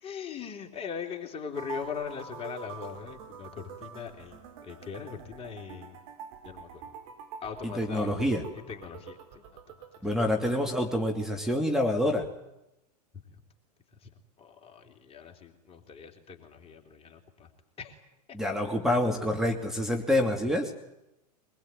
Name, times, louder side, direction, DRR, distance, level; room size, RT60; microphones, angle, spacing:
voice 1, 0.0-6.0 6.4-6.8 7.4-8.1 8.5-9.4 14.0-14.1 14.4-17.5 17.8-17.9, left 7 dB, 25° left, 4 dB, 3.4 m, -40 dB
sound 1, 1.5-11.0, right 6 dB, 55° right, 4.6 m, -46 dB
voice 2, 7.6-8.5 10.0-12.3 18.3-20.7, left 1 dB, ahead, 2 dB, 2.8 m, -27 dB
23.5 x 21.0 x 9.2 m, 0.91 s
figure-of-eight pair, 100°, 21 cm